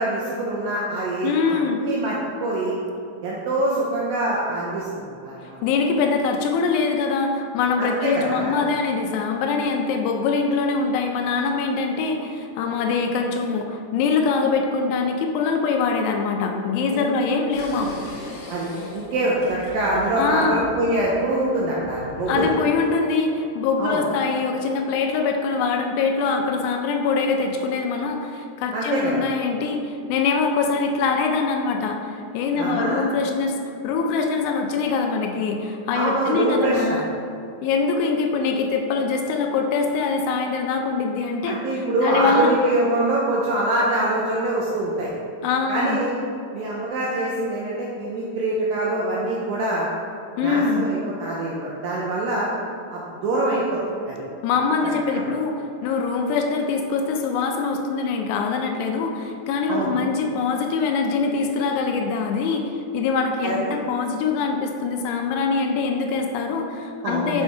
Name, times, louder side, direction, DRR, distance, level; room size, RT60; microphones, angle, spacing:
voice 1, 0.0-2.7 3.2-5.6 7.8-8.6 16.9-17.1 18.5-22.5 23.8-24.0 28.7-29.2 32.6-33.1 35.9-37.0 41.5-45.1 45.7-46.1 46.5-49.9 50.4-52.5 52.9-53.8 54.1-54.2 55.1-55.2 59.7-59.9 63.4-63.6 67.0-67.4, right 1 dB, 80° right, -4 dB, 2.1 m, -24 dB
voice 2, 1.2-1.8 5.6-18.1 20.2-20.7 22.3-33.6 33.8-37.0 37.6-41.6 42.0-42.6 45.4-46.0 50.4-50.9 54.4-67.4, left 4 dB, 85° left, 3 dB, 2.5 m, -23 dB
sound 1, 17.5-22.9, left 1 dB, 55° left, 2.0 m, -38 dB
7.1 x 5.4 x 3.4 m, 2.5 s
omnidirectional pair, 4.9 m